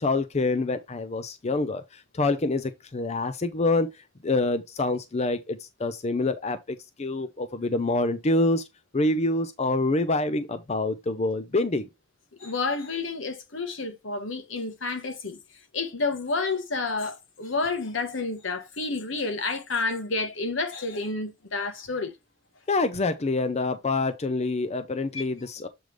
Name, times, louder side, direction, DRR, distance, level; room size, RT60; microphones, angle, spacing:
voice 1, 0.0-8.6 8.9-11.8 22.7-25.7, left 2 dB, 35° left, 0.6 m, -26 dB
voice 2, 12.4-15.4 15.7-22.1 25.1-25.2, left 3 dB, 70° left, 1.3 m, -30 dB
7.8 x 3.3 x 5.1 m
head